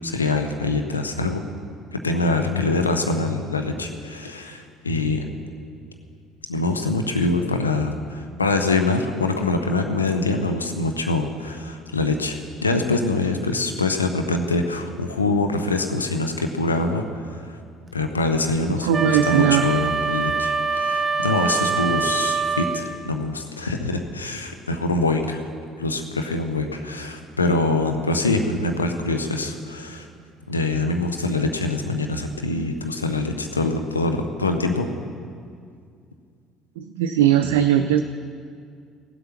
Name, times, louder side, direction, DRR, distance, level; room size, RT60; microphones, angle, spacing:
voice 1, 0.0-1.4 1.9-5.2 6.5-17.6 17.9-25.5 25.8-30.0 30.5-34.9, left 2 dB, 90° left, 5 dB, 0.7 m, -24 dB
voice 2, 18.7-19.7 36.8-38.0, right 10 dB, 75° right, 6 dB, 0.4 m, -19 dB
Wind instrument woodwind instrument, 18.9-22.9, right 5 dB, 25° right, 0.8 m, -24 dB
16.5 x 8.0 x 5.9 m, 2.2 s
figure-of-eight pair, 55°, 0 cm